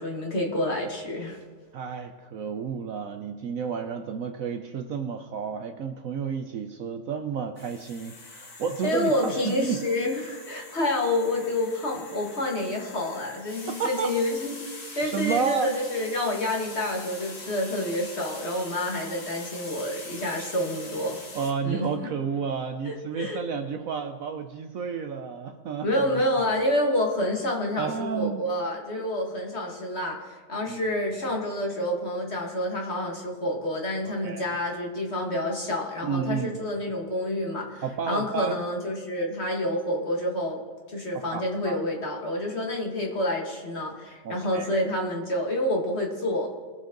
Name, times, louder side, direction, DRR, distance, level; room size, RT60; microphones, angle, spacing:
voice 1, 0.0-1.4 8.8-14.6 15.0-21.2 21.6-22.1 22.8-23.4 25.8-40.6 40.9-46.5, left 1 dB, 40° left, 0 dB, 2.0 m, -28 dB
voice 2, 1.7-9.8 13.7-14.1 15.0-15.7 21.3-26.2 27.8-28.4 30.6-31.0 34.1-34.5 36.0-36.6 37.8-38.5 41.1-41.8 44.2-44.7, right 6 dB, 65° right, 6 dB, 0.9 m, -31 dB
sound 1, 7.6-21.5, left 3 dB, 60° left, 2.3 m, -43 dB
20.5 x 7.5 x 3.9 m, 1.5 s
omnidirectional pair, 1.8 m